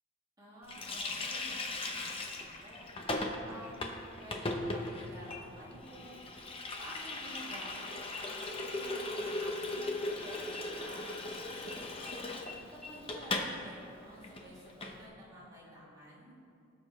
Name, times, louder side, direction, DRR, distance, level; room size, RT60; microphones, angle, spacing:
voice 1, 0.4-3.2 3.5-16.3, equal, 20° right, -8 dB, 2.7 m, -51 dB
Water tap faucet, 0.7-13.6 13.8-13.9 14.2-15.0, left 2 dB, 25° left, 0.8 m, -38 dB
sound 1, 5.3-5.7 6.1-6.4 6.7-7.8 8.1-10.1 10.5-11.3 11.7-11.8 12.1-12.2 12.5-12.6 12.8-12.9, left 5 dB, ahead, 1.5 m, -53 dB
18.5 x 6.9 x 3.2 m, 2.6 s
head